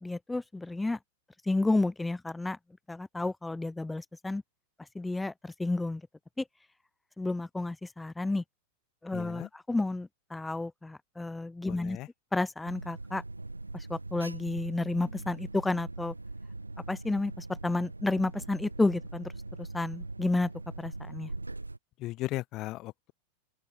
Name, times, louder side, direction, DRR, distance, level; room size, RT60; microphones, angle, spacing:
voice 1, 0.0-1.0 1.5-2.6 2.9-4.4 4.9-6.0 6.4-6.5 7.2-8.4 9.0-12.0 12.3-13.2 13.9-16.1 16.9-19.3 19.6-20.5 20.8-21.3, left 2 dB, 5° left, 0.5 m, -31 dB
voice 2, 9.1-9.5 11.7-12.1 22.0-23.1, left 18 dB, 35° left, 2.0 m, -37 dB
Alarm, 12.7-21.8, right 2 dB, 85° right, 3.4 m, -41 dB
open air
figure-of-eight pair, 90°, 0 cm